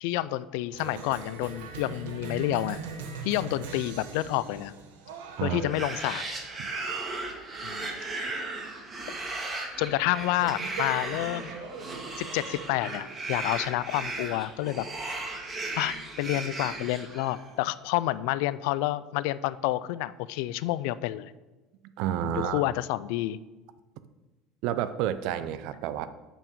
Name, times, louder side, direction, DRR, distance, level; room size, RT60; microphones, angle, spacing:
voice 1, 0.0-2.8 3.2-4.7 5.4-6.2 7.6-7.9 9.8-11.5 12.2-14.9 15.7-21.3 22.3-23.4, left 16 dB, 75° left, 17 dB, 0.3 m, -29 dB
Cheering, 0.7-15.9, right 5 dB, 85° right, 1.0 m, -42 dB
sound 1, 5.5-17.5, right 2 dB, 30° right, 1.8 m, -36 dB
voice 2, 22.0-22.6 24.6-26.1, right 11 dB, 70° right, 13 dB, 0.5 m, -30 dB
6.9 x 5.7 x 5.3 m, 1.1 s
hypercardioid pair, 85°, 0 cm